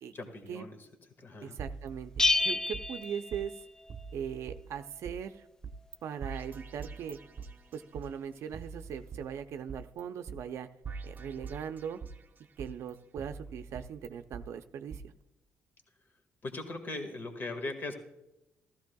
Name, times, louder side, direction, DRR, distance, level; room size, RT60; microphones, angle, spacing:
voice 1, 0.1-0.8 1.2-1.6 16.4-17.9, left 2 dB, 45° left, 5 dB, 1.7 m, -39 dB
voice 2, 1.4-3.6 4.1-5.5 6.0-7.2 7.7-10.7 11.0-12.0 12.6-15.1, right 8 dB, 70° right, 9 dB, 0.6 m, -40 dB
sound 1, 1.6-3.1 3.3-3.4 3.9-5.2 5.6-6.0 6.2-8.1 8.5-10.0 10.3-10.4 10.8-12.2 12.6-14.4 14.9-15.0, right 5 dB, 40° right, 0.8 m, -44 dB
Bell, 2.2-4.0, left 3 dB, 10° left, 0.3 m, -29 dB
14.5 x 14.0 x 2.3 m, 0.91 s
cardioid pair, 85°, 5 cm